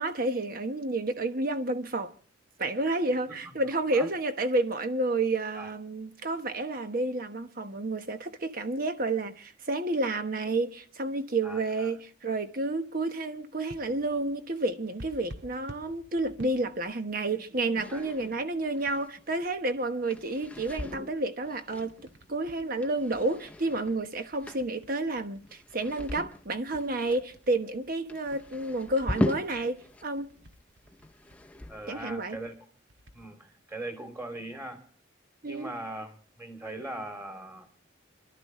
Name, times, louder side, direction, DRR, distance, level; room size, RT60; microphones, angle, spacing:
voice 1, 0.0-2.1 2.6-21.9 22.3-30.3 31.9-32.4 35.4-35.7, right 2 dB, 50° right, 1.1 m, -30 dB
voice 2, 11.4-11.9 17.9-18.0 31.7-32.5 33.1-34.8 35.4-37.7, right 1 dB, 15° right, 2.7 m, -40 dB
sound 1, 13.7-17.8 18.3-19.5 20.4-20.5 21.5-33.2, right 1 dB, 65° right, 1.8 m, -52 dB
sound 2, 17.8-30.1 30.3-32.0, left 1 dB, 10° left, 0.7 m, -39 dB
26.5 x 12.0 x 3.2 m
head